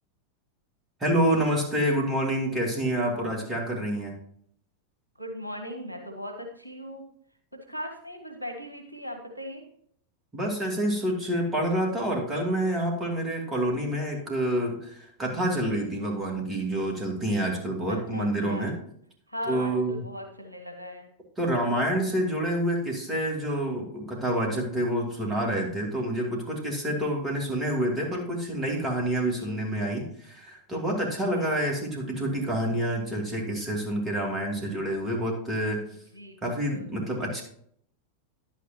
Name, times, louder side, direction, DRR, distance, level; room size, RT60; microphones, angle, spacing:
voice 1, 1.0-4.1 10.3-18.8 19.5-19.9 21.4-35.8 36.4-37.4, right 1 dB, 20° right, -1 dB, 2.6 m, -28 dB
voice 2, 5.1-7.0 7.5-9.6 15.5-15.9 17.9-18.7 19.3-21.1 25.2-25.5 29.4-29.9 31.3-31.6 35.9-36.9, equal, 85° right, 4 dB, 1.1 m, -39 dB
11.0 x 8.6 x 2.9 m, 0.65 s
figure-of-eight pair, 90°, 0 cm